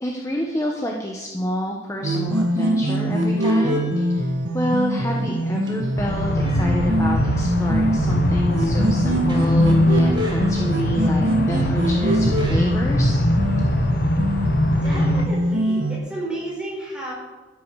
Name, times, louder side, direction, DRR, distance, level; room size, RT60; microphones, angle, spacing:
voice 1, 0.0-13.2, equal, 15° left, 0 dB, 1.0 m, -29 dB
sound 1, 1.3-1.7 3.4-4.7 5.1-7.3 8.1-11.1 11.8-13.1 14.8-15.7, equal, 25° right, 1.7 m, -37 dB
sound 2, 2.0-16.0, right 1 dB, 85° right, 1.9 m, -23 dB
sound 3, 6.0-15.3, left 1 dB, 55° left, 1.1 m, -22 dB
voice 2, 14.8-17.1, right 1 dB, 5° right, -5 dB, 4.8 m, -32 dB
13.0 x 10.5 x 4.8 m, 1.2 s
head